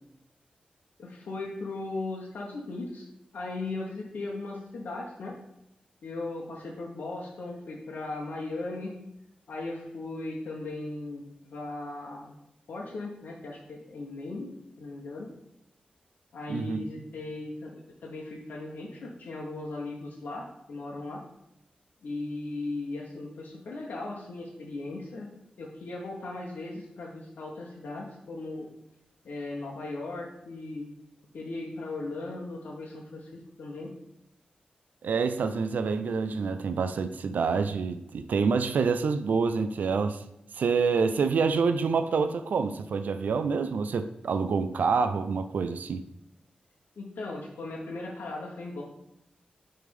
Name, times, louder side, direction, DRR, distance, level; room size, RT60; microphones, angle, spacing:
voice 1, 1.0-3.1 3.3-5.4 6.0-9.0 9.5-12.3 12.7-14.5 14.8-15.3 16.3-21.2 22.0-25.3 25.6-28.7 29.2-30.9 31.3-33.9 47.0-48.8, left 2 dB, 90° left, -3 dB, 1.0 m, -37 dB
voice 2, 16.5-16.8 35.0-40.2 40.5-46.0, right 5 dB, 80° right, 10 dB, 0.4 m, -27 dB
6.5 x 3.4 x 5.2 m, 0.83 s
wide cardioid pair, 175°, 3 cm